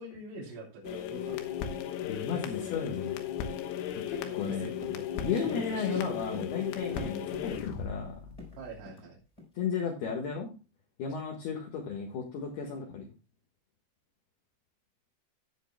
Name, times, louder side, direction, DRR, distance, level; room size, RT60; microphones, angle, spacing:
voice 1, 0.0-1.6 4.2-6.5 6.9-7.1 8.6-9.2, right 2 dB, 85° right, -7 dB, 6.0 m, -46 dB
sound 1, 0.8-8.8, left 9 dB, 85° left, 3.7 m, -36 dB
voice 2, 2.1-3.2 4.1-4.7 5.2-8.3 9.6-10.6 11.0-13.1, left 6 dB, 60° left, 0 dB, 3.2 m, -34 dB
sound 2, 4.8-7.5 7.7-7.8 8.1-9.1 9.4-9.6 10.0-10.2, left 1 dB, 10° left, 3.9 m, -47 dB
17.5 x 8.1 x 2.2 m, 0.29 s
omnidirectional pair, 5.6 m